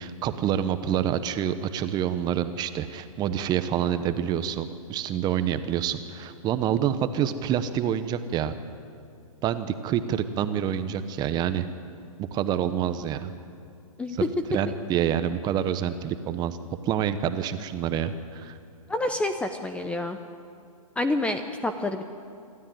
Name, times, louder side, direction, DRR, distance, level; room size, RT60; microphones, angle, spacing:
voice 1, 0.0-8.6 9.4-11.7 12.2-13.3 14.5-16.6 16.9-18.6, right 9 dB, 20° right, 11 dB, 1.0 m, -27 dB
voice 2, 18.9-20.2 21.0-22.0, left 2 dB, 5° left, 8 dB, 0.7 m, -28 dB
26.0 x 13.0 x 9.3 m, 2.4 s
hypercardioid pair, 140°, 18 cm